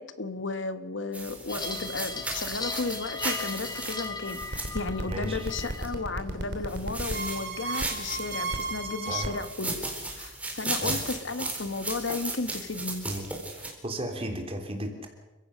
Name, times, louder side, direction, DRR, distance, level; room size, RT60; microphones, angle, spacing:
voice 1, 0.0-9.8 10.2-13.1, left 3 dB, 75° left, 11 dB, 1.4 m, -34 dB
sound 1, 1.1-5.9 6.7-8.7 9.3-13.7, right 2 dB, 5° right, 4.1 m, -36 dB
sound 2, 1.5-8.9, left 3 dB, 20° left, 1.7 m, -39 dB
sound 3, 4.4-9.5, right 2 dB, 60° right, 3.0 m, -34 dB
voice 2, 5.1-5.5 9.1-9.3 10.8-11.0 13.0-13.3 13.6-15.1, right 1 dB, 30° right, 4 dB, 3.5 m, -35 dB
29.0 x 16.0 x 6.4 m, 1.1 s
head